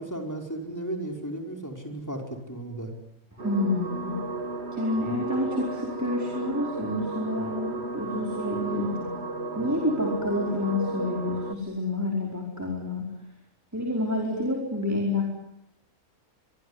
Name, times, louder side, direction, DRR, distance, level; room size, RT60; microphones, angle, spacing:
voice 1, 0.0-2.9, right 1 dB, 10° left, 3 dB, 5.1 m, -35 dB
voice 2, 3.4-4.1 4.7-9.1 9.5-13.1 13.7-15.3, left 2 dB, 10° right, 0 dB, 5.0 m, -28 dB
sound 1, 3.4-11.5, right 3 dB, 45° right, 2.3 m, -33 dB
25.5 x 23.5 x 9.9 m, 0.83 s
omnidirectional pair, 1.6 m